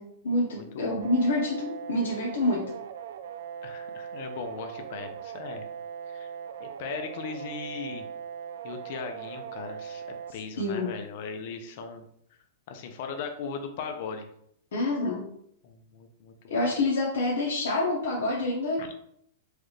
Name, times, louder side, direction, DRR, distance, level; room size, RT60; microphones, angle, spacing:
voice 1, 0.0-2.7 10.6-10.9 14.7-15.3 16.5-18.8, left 2 dB, 75° left, -3 dB, 0.9 m, -27 dB
voice 2, 0.5-1.0 3.6-5.7 6.1-6.3 6.6-8.1 8.6-10.0 10.3-12.1 12.7-14.3 15.6-16.3 18.8-19.0, left 5 dB, 55° left, 6 dB, 0.6 m, -38 dB
sound 1, 1.0-10.3, right 8 dB, 75° right, 0.3 m, -40 dB
4.7 x 2.4 x 3.2 m, 0.70 s
hypercardioid pair, 145°, 0 cm